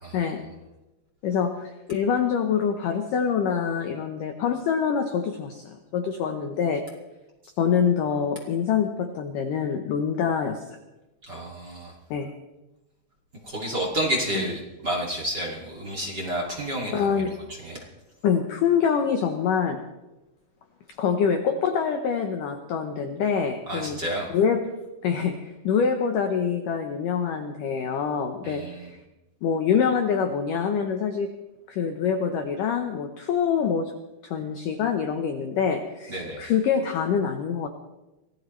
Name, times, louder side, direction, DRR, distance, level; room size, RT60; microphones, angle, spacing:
voice 1, 1.2-6.9 7.6-10.8 12.1-12.3 16.9-17.4 18.2-19.8 21.0-24.0 24.3-24.6 25.0-29.0 29.4-31.3 31.7-33.9 34.2-37.7, left 7 dB, 85° left, 6 dB, 1.8 m, -25 dB
voice 2, 11.2-11.9 13.4-17.3 17.6-17.8 23.7-24.3 28.4-28.9 36.1-36.4, right 1 dB, 30° right, -1 dB, 2.1 m, -30 dB
24.5 x 17.5 x 3.2 m, 1.0 s
omnidirectional pair, 5.2 m